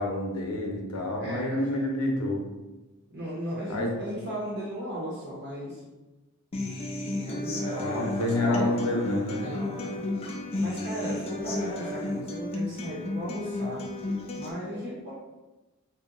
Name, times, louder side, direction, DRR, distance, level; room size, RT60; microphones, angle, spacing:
voice 1, 0.0-2.4 3.7-3.9 7.8-9.4, left 1 dB, 90° left, 0 dB, 0.7 m, -28 dB
voice 2, 1.2-1.9 3.1-5.8 7.2-8.7 9.4-10.1 10.5-13.8 14.3-15.1, equal, 50° right, -6 dB, 0.7 m, -36 dB
Human voice / Acoustic guitar, 6.5-14.5, left 2 dB, 25° left, 0.3 m, -33 dB
2.8 x 2.0 x 3.7 m, 1.1 s
head